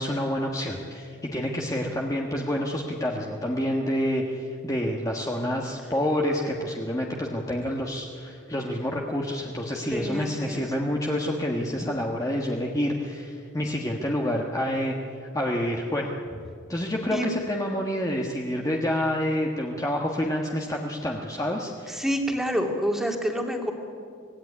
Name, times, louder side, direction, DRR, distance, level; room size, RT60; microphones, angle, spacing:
voice 1, 0.0-16.1 16.7-22.0, equal, 15° left, 0 dB, 1.5 m, -28 dB
voice 2, 9.9-10.6 17.1-17.3 21.9-23.7, equal, ahead, 2 dB, 2.5 m, -28 dB
25.0 x 17.5 x 9.9 m, 2.4 s
head